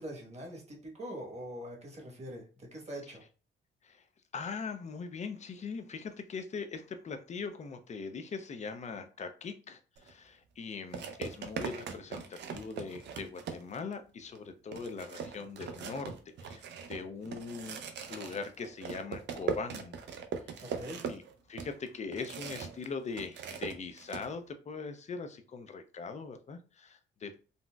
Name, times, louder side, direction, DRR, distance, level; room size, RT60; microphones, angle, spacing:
voice 1, 0.0-3.2 20.6-21.0, equal, 35° right, 1 dB, 1.2 m, -43 dB
voice 2, 4.3-16.2 16.4-17.8 18.1-20.0 20.5-20.6 21.1-21.2 21.5-27.4, left 5 dB, 35° left, 8 dB, 0.4 m, -41 dB
sound 1, 10.0-10.1 10.9-13.9 14.4-14.5 14.7-22.9 23.1-24.3, right 6 dB, 60° right, 0.5 m, -40 dB
3.8 x 2.0 x 2.3 m, 0.36 s
cardioid pair, 90°, 20 cm